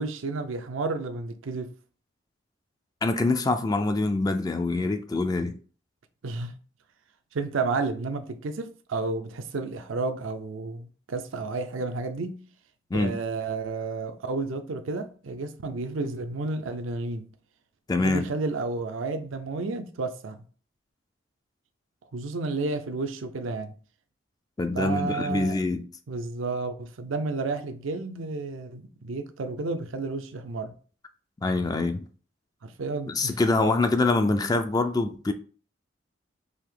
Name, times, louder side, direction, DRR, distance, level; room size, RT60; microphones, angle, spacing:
voice 1, 0.0-1.7 6.2-6.6 7.3-12.4 12.9-17.3 18.0-20.4 22.1-23.7 24.7-25.6 26.1-30.7 32.6-33.4, right 3 dB, 80° right, 0.5 m, -31 dB
voice 2, 3.0-5.6 12.9-13.2 17.9-18.3 24.6-25.8 31.4-32.0 33.1-35.3, left 2 dB, 20° left, 0.3 m, -25 dB
4.9 x 2.7 x 3.7 m
head